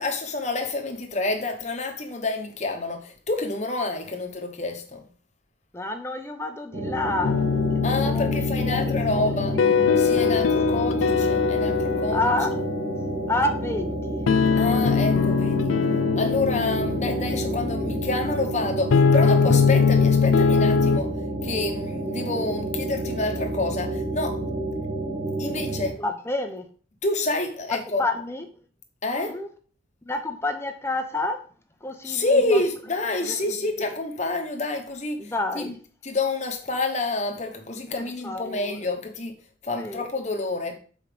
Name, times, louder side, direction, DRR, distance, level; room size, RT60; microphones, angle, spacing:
voice 1, 0.0-5.0 7.8-9.6 10.0-12.2 14.6-15.7 16.2-21.1 21.4-24.4 25.4-26.0 27.0-28.0 29.0-29.4 32.0-35.7 36.0-39.3 39.6-40.8, left 2 dB, 35° left, 1.1 m, -28 dB
voice 2, 5.7-7.4 7.7-9.4 10.3-10.7 12.1-12.5 13.3-14.2 26.0-26.7 27.7-28.5 29.1-29.5 30.0-31.4 31.8-32.6 33.2-33.6 35.2-35.7 38.0-38.9 39.8-40.1, left 2 dB, 15° left, 0.8 m, -29 dB
sound 1, 6.7-25.9, right 2 dB, 65° right, 2.8 m, -30 dB
sound 2, 7.2-21.0, left 5 dB, 85° left, 0.4 m, -22 dB
6.9 x 4.8 x 5.0 m
head